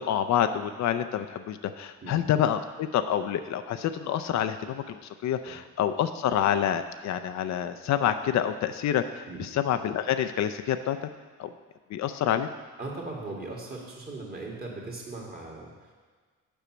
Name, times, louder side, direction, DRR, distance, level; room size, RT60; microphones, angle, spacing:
voice 1, 0.0-11.0 11.4-11.5 11.9-12.5, left 10 dB, 65° left, 8 dB, 0.5 m, -27 dB
voice 2, 12.8-15.9, right 2 dB, 30° right, -3 dB, 2.1 m, -39 dB
6.9 x 5.5 x 6.1 m, 1.5 s
cardioid pair, 90°, 30 cm